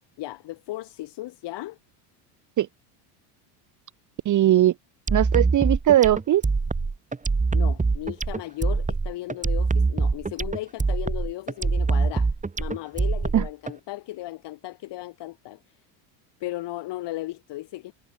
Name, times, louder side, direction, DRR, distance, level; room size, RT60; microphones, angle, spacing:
voice 1, 0.2-1.8 7.5-12.3 12.6-15.6 16.4-17.9, left 17 dB, 60° left, 6.3 m, -36 dB
voice 2, 4.2-4.7 5.1-6.4 13.3-13.4, right 12 dB, 40° right, 1.1 m, -19 dB
sound 1, 5.1-13.7, right 4 dB, 15° right, 2.6 m, -24 dB
supercardioid pair, 95°, 48 cm